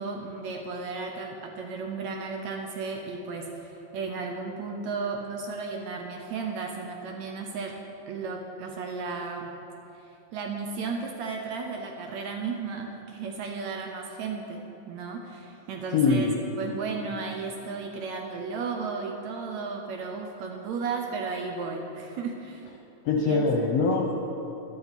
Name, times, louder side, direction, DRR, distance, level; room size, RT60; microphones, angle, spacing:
voice 1, 0.0-7.8 8.1-9.5 10.0-16.3 16.6-22.7 23.2-23.5, right 4 dB, 70° right, 2 dB, 1.8 m, -34 dB
voice 2, 15.9-16.3 23.0-24.1, left 4 dB, 70° left, 1 dB, 1.6 m, -23 dB
12.5 x 11.0 x 4.1 m, 2.9 s
omnidirectional pair, 3.7 m